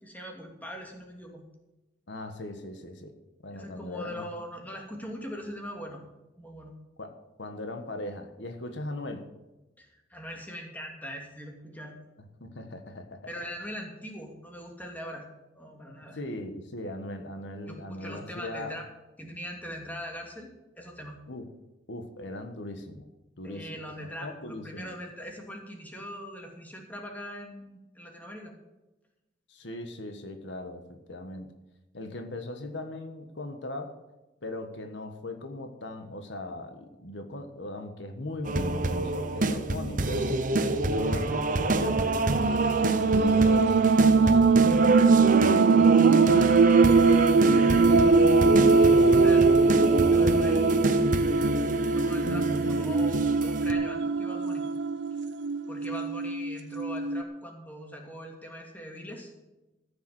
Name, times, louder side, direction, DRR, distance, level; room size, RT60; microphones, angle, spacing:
voice 1, 0.0-1.4 3.5-6.0 6.4-6.8 9.8-11.9 13.3-15.3 15.5-16.2 17.7-18.8 19.2-20.5 20.8-21.2 23.4-28.5 48.8-50.8 51.6-54.6 55.7-59.3, equal, 10° left, 1 dB, 2.6 m, -41 dB
voice 2, 2.1-3.2 3.4-4.3 7.0-9.3 12.4-13.5 16.1-18.7 21.3-21.5 21.9-23.1 23.4-24.9 29.5-31.5 31.9-34.0 34.4-40.4 40.9-45.2 45.5-46.6 47.4-48.9, left 1 dB, 80° left, 6 dB, 1.5 m, -39 dB
sound 1, 38.4-53.7, right 2 dB, 45° right, 1.0 m, -27 dB
sound 2, 42.4-57.2, right 4 dB, 75° right, 0.6 m, -22 dB
14.5 x 7.0 x 7.9 m, 1.0 s
head